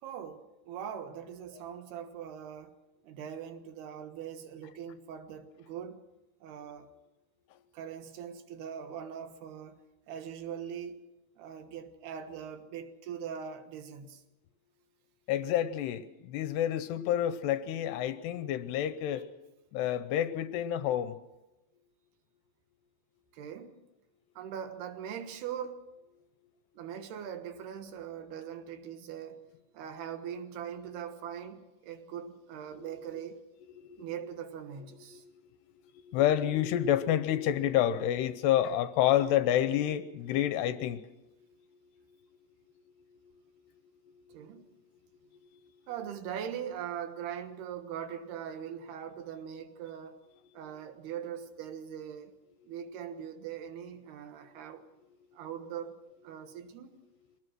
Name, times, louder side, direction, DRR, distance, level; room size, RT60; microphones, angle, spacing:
voice 1, 0.0-2.8 3.0-6.0 6.4-6.9 7.7-9.8 10.1-11.0 11.4-14.2 23.3-23.8 24.4-25.8 26.7-29.5 29.7-33.4 34.0-35.2 44.3-44.7 45.9-50.2 50.5-52.3 52.7-54.8 55.3-56.0 56.2-57.0, right 8 dB, 70° right, 3.2 m, -41 dB
voice 2, 15.3-19.2 19.7-21.1 32.7-33.0 33.9-34.0 35.1-35.2 36.1-41.0, left 11 dB, 75° left, 2.7 m, -28 dB
23.5 x 19.0 x 6.3 m
omnidirectional pair, 5.2 m